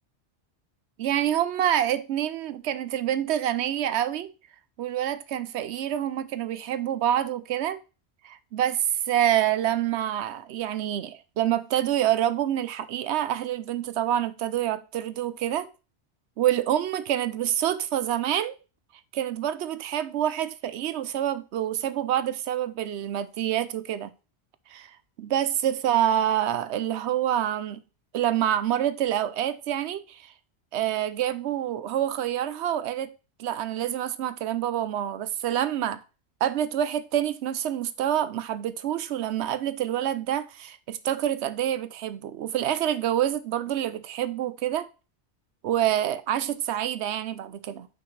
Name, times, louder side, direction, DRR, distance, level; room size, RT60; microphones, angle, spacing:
voice 1, 1.0-4.3 4.8-7.8 8.2-15.7 16.4-18.5 19.1-24.1 24.7-24.9 25.2-27.8 28.1-30.3 30.7-33.1 33.4-36.0 36.4-44.9 45.6-47.9, right 11 dB, 85° right, 0.9 m, -27 dB
5.9 x 5.6 x 3.2 m
omnidirectional pair, 1.1 m